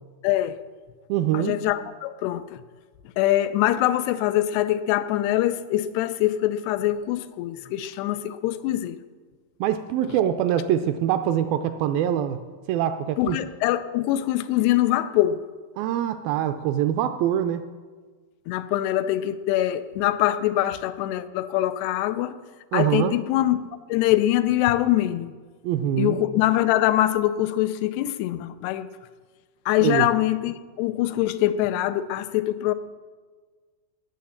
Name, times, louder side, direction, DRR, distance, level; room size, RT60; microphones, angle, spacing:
voice 1, 0.2-0.6 1.3-2.6 3.2-9.0 13.2-15.4 18.5-22.3 22.7-23.6 23.9-25.3 26.0-28.9 29.7-32.7, left 14 dB, 90° left, 11 dB, 2.8 m, -23 dB
voice 2, 1.1-1.6 9.6-12.4 12.7-13.4 15.8-17.7 22.7-23.2 25.6-26.2 29.8-30.1, right 11 dB, 80° right, 9 dB, 2.1 m, -24 dB
18.5 x 7.6 x 7.2 m, 1.5 s
omnidirectional pair, 4.6 m